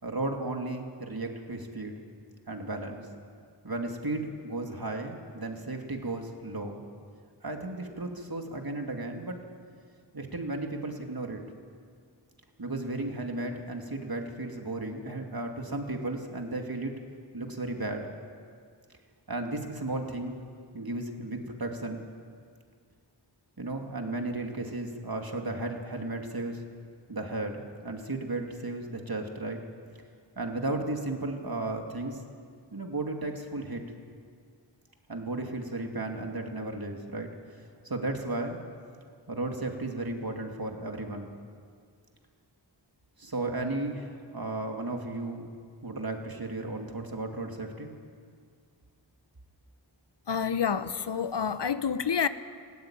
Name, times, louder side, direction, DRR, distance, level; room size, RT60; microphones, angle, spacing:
voice 1, 0.0-1.9 2.5-3.0 3.6-6.8 7.4-9.4 10.1-11.4 12.6-16.9 17.3-18.1 19.3-20.4 20.7-22.0 23.6-26.6 27.1-29.6 30.4-32.2 32.7-33.8 35.1-37.3 37.8-38.6 39.3-41.3 43.2-45.5 45.8-47.9, right 2 dB, 55° right, 2.6 m, -34 dB
voice 2, 50.3-52.3, left 7 dB, 65° left, 0.9 m, -28 dB
19.0 x 15.5 x 9.0 m
wide cardioid pair, 40°, 44 cm